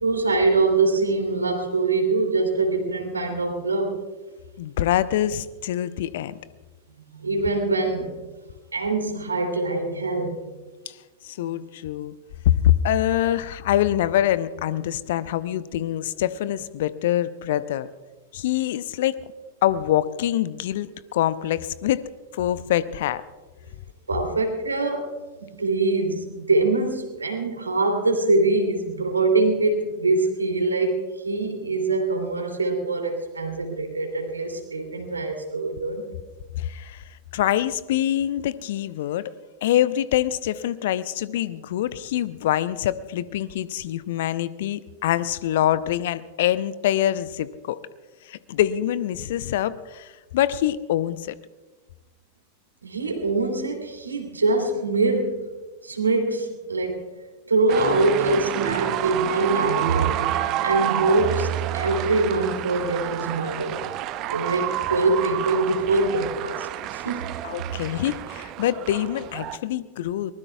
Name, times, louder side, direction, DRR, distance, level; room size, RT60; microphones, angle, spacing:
voice 1, 0.0-4.0 7.1-8.2 8.7-10.4 24.1-25.1 25.4-36.0 52.8-55.5 55.8-57.1 57.5-60.3 60.6-63.8 64.3-67.3, right 3 dB, 75° right, 4 dB, 2.8 m, -24 dB
voice 2, 4.6-6.4 10.9-11.0 11.2-12.2 12.5-17.9 18.3-19.2 19.6-22.0 22.3-23.2 36.6-37.0 37.3-39.3 39.6-47.8 48.3-51.4 67.4-70.3, left 12 dB, 55° left, 17 dB, 0.6 m, -25 dB
sound 1, 57.7-69.6, right 13 dB, 40° right, 0.8 m, -29 dB
23.0 x 20.0 x 2.3 m, 1.2 s
figure-of-eight pair, 90°, 0 cm